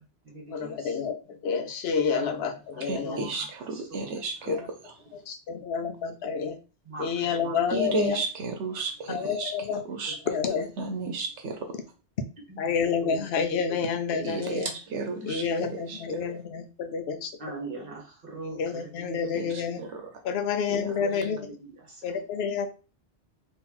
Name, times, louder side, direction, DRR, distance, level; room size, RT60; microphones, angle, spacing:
voice 1, 0.0-1.0 2.1-2.4 2.7-4.1 4.4-4.5 6.8-7.6 8.0-8.2 9.2-9.3 10.1-10.2 12.5-12.6 13.0-13.2 13.7-13.8 14.1-14.6 14.9-15.1 15.4-15.5 17.4-19.8 21.0-22.2, right 2 dB, 50° right, 0 dB, 1.6 m, -42 dB
voice 2, 0.5-3.3 4.5-4.7 5.3-6.6 7.0-8.2 9.1-9.8 10.3-10.7 12.6-14.7 15.3-17.3 18.4-19.8 20.2-21.5 22.0-22.7, left 6 dB, 65° left, 7 dB, 0.9 m, -29 dB
voice 3, 2.8-4.9 7.7-9.5 9.8-10.1 10.8-11.8 14.2-16.3 19.3-20.1 20.7-21.0, right 3 dB, 85° right, 4 dB, 1.1 m, -33 dB
3.8 x 2.9 x 4.2 m, 0.32 s
omnidirectional pair, 1.2 m